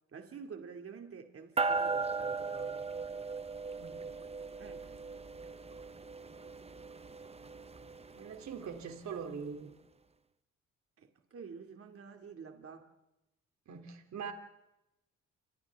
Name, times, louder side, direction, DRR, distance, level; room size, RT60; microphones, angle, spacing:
voice 1, 0.1-2.9 4.6-4.8 11.0-12.9, right 6 dB, 50° right, 2.5 m, -49 dB
sound 1, 1.6-9.3, right 4 dB, 20° right, 1.0 m, -38 dB
voice 2, 3.7-4.1 8.1-9.7 13.7-14.3, right 6 dB, 65° right, 3.2 m, -42 dB
29.5 x 25.5 x 3.6 m
cardioid pair, 90°, 30 cm